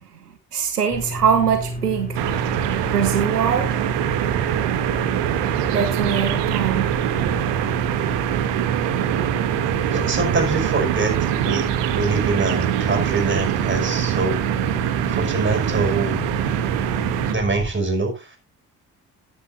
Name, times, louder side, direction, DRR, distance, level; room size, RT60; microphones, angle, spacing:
voice 1, 0.5-2.2 2.9-3.7 5.7-6.9, right 7 dB, 85° right, 1.0 m, -22 dB
sound 1, 0.9-17.7, equal, 20° left, 3.4 m, -30 dB
sound 2, 2.1-17.3, right 13 dB, 65° right, 1.4 m, -23 dB
voice 2, 9.9-11.7 11.9-14.4 15.1-16.3 17.3-18.2, right 3 dB, 25° right, 5.4 m, -24 dB
15.0 x 9.9 x 2.6 m
figure-of-eight pair, 40°, 45 cm